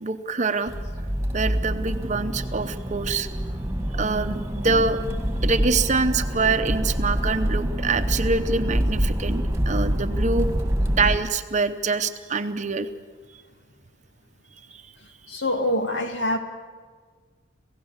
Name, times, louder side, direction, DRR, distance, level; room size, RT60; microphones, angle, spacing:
voice 1, 0.0-0.7 1.3-3.3 3.9-5.0 5.4-10.5 11.0-12.9, right 4 dB, 40° right, 9 dB, 0.8 m, -25 dB
Accelerating revving vroom, 0.7-11.2, equal, 15° right, 1.9 m, -26 dB
voice 2, 15.3-16.4, left 1 dB, 70° left, 6 dB, 2.2 m, -25 dB
26.5 x 17.0 x 7.3 m, 1.5 s
head